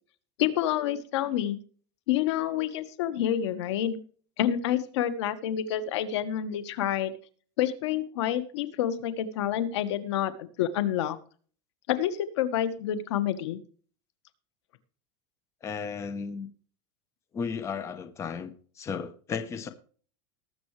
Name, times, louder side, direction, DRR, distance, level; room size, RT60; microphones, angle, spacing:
voice 1, 0.4-1.6 2.1-4.0 4.4-7.1 7.6-11.2 11.9-13.6, left 11 dB, 85° left, 12 dB, 1.5 m, -28 dB
voice 2, 15.6-16.5 17.3-19.7, left 6 dB, 20° left, 10 dB, 0.9 m, -34 dB
19.0 x 7.8 x 3.3 m, 0.43 s
supercardioid pair, 165°, 14 cm